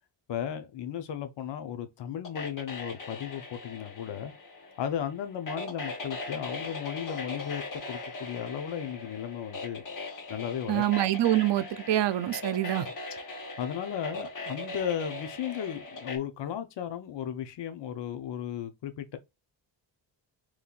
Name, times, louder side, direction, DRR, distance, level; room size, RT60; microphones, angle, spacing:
voice 1, 0.3-4.3 4.8-7.6 7.9-9.8 10.3-10.8 13.6-19.2, left 9 dB, 65° left, 0.8 m, -35 dB
sound 1, 2.2-16.2, left 2 dB, 45° left, 1.4 m, -40 dB
voice 2, 10.7-12.9, right 13 dB, 65° right, 0.6 m, -26 dB
5.4 x 3.1 x 2.4 m
wide cardioid pair, 180°, 45 cm